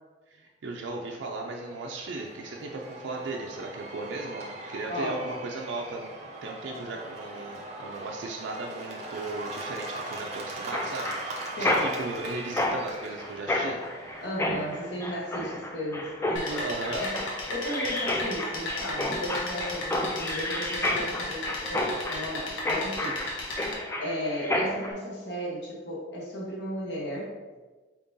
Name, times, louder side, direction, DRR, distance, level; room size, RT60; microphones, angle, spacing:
voice 1, 0.3-6.1 6.4-13.8 16.5-17.0, right 3 dB, 80° right, 0 dB, 0.4 m, -37 dB
Cheering / Applause / Crowd, 1.0-15.8, right 2 dB, 35° right, 0.6 m, -41 dB
voice 2, 4.9-5.3 11.6-11.9 14.2-17.2 17.5-21.4 21.7-23.2 24.0-27.4, equal, 60° left, -4 dB, 1.0 m, -35 dB
Mechanisms, 10.7-24.9, left 1 dB, 15° left, 0.3 m, -31 dB
sound 1, 16.4-23.7, left 2 dB, 90° left, 0.9 m, -36 dB
4.4 x 3.6 x 2.7 m, 1.3 s
head